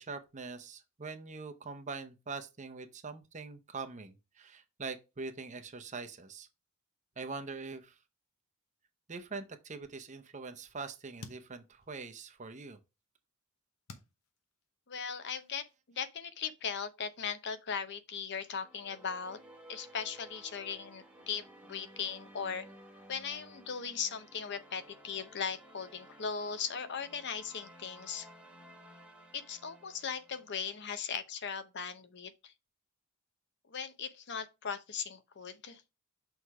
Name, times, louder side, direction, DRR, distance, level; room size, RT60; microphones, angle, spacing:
voice 1, 0.0-6.5 7.2-7.9 9.1-12.8, right 4 dB, 35° right, 0.7 m, -43 dB
sound 1, 11.2-12.6 13.1-15.2, left 3 dB, 70° left, 0.9 m, -54 dB
voice 2, 14.9-15.6 15.9-19.4 19.7-22.7 23.1-28.3 29.3-32.5 33.7-35.8, left 6 dB, 50° left, 0.7 m, -38 dB
sound 2, 18.5-30.9, right 1 dB, 5° right, 0.9 m, -56 dB
6.4 x 3.5 x 4.7 m
head